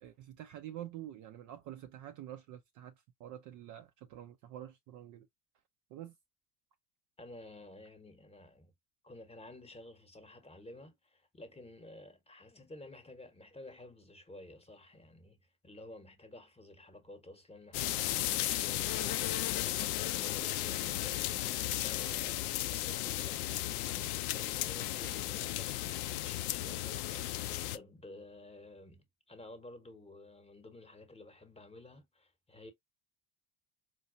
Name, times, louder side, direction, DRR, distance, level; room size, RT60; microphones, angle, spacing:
voice 1, 0.0-2.9 3.2-5.3 5.9-6.2, right 12 dB, 40° right, 0.4 m, -47 dB
voice 2, 7.2-8.7 9.0-32.7, left 2 dB, 15° left, 1.0 m, -52 dB
sound 1, 17.7-27.8, left 14 dB, 65° left, 0.5 m, -35 dB
4.5 x 2.4 x 2.5 m
figure-of-eight pair, 60°, 48 cm